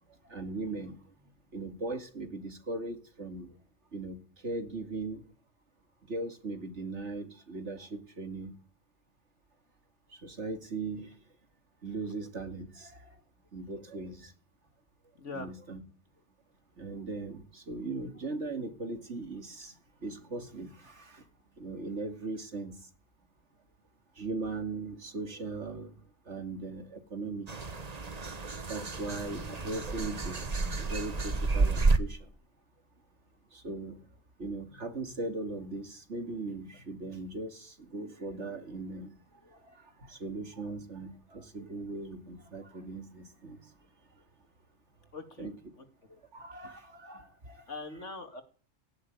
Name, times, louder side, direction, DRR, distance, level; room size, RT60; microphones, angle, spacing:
voice 1, 0.3-1.0 1.5-3.5 3.9-5.2 6.1-8.5 10.1-11.1 11.8-13.2 13.5-14.3 15.3-15.8 16.8-19.7 20.0-21.2 21.6-22.8 24.2-26.0 26.3-27.5 28.7-32.3 33.5-34.0 34.4-39.1 39.4-43.6 45.4-45.5 46.1-47.6, right 3 dB, 60° right, 2.8 m, -39 dB
voice 2, 15.1-15.5 45.1-45.5 47.7-48.4, left 3 dB, 60° left, 2.8 m, -41 dB
sound 1, 27.5-32.0, right 3 dB, 30° right, 1.3 m, -30 dB
16.5 x 16.5 x 9.5 m
omnidirectional pair, 1.4 m